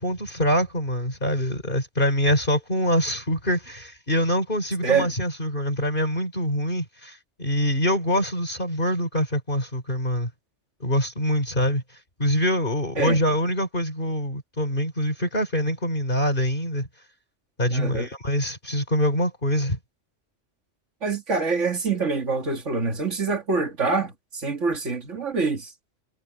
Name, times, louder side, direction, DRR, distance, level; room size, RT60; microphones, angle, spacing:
voice 1, 0.0-10.3 10.8-11.8 12.2-16.9 17.6-19.8, equal, 45° left, 4.5 m, -24 dB
voice 2, 17.7-18.1 21.0-25.7, right 4 dB, 85° right, 2.4 m, -25 dB
omnidirectional pair, 1.2 m